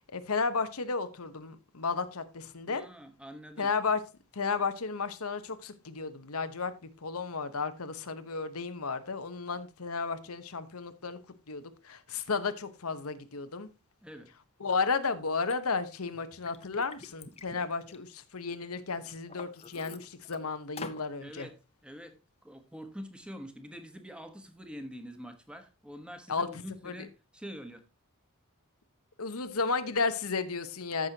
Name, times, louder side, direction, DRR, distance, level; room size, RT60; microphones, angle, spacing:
voice 1, 0.1-2.8 3.6-4.0 4.3-11.2 11.5-13.7 14.6-21.5 26.3-27.0 29.2-31.1, left 4 dB, 90° left, 1.1 m, -33 dB
voice 2, 2.7-3.7 14.0-14.3 21.2-21.6 21.8-22.1 22.4-27.8, equal, 5° right, 1.2 m, -45 dB
Liquid, 15.5-15.6 16.1-18.5 19.0-20.4 20.8-21.0, left 4 dB, 30° left, 0.8 m, -46 dB
14.0 x 6.2 x 2.9 m
head